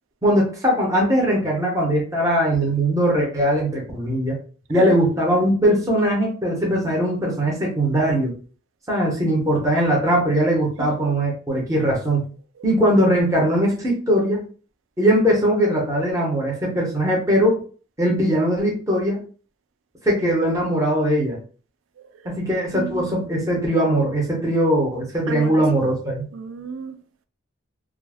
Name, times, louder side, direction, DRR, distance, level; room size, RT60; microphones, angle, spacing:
voice 1, 0.2-4.4 4.7-8.3 8.9-12.3 12.6-14.4 15.0-17.6 18.0-19.2 20.0-21.4 22.2-26.3, equal, 15° right, 0.8 m, -20 dB
voice 2, 22.7-23.3 25.3-25.6 26.3-27.0, right 5 dB, 75° right, 0.4 m, -33 dB
2.4 x 2.2 x 3.4 m
head